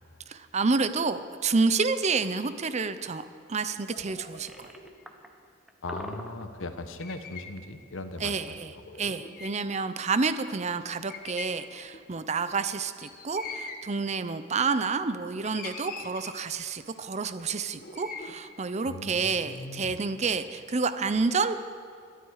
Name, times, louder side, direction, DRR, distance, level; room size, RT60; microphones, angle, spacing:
voice 1, 0.3-3.2 3.5-4.7 8.2-8.7 9.0-21.5, right 4 dB, 35° right, 11 dB, 0.6 m, -29 dB
sound 1, 3.9-5.1 6.8-7.6 7.8-7.9 8.7-9.7 10.2-10.3 10.5-10.8 11.1-12.0 13.0-13.9 14.6-15.1 15.4-16.6 17.4-18.4, left 4 dB, 45° left, 1.5 m, -43 dB
sound 2, 4.3-5.3 5.7-6.7, equal, ahead, 1.0 m, -43 dB
voice 2, 5.8-8.5 9.0-9.1 18.8-20.0, left 2 dB, 85° left, 8 dB, 1.1 m, -39 dB
21.5 x 12.5 x 4.8 m, 2.2 s
head